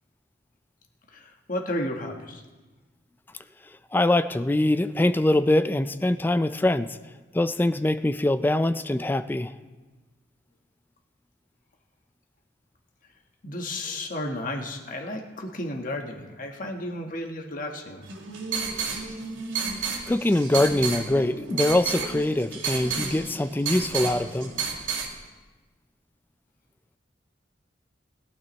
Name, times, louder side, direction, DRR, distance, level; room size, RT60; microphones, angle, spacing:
voice 1, 1.1-2.4 13.4-18.1, left 1 dB, 45° left, 3 dB, 1.3 m, -33 dB
voice 2, 3.9-7.0 7.3-9.5 20.1-24.5, left 1 dB, 10° left, 12 dB, 0.3 m, -23 dB
sound 1, 18.0-25.1, right 5 dB, 85° right, 2.3 m, -31 dB
20.5 x 12.0 x 3.1 m, 1.3 s
head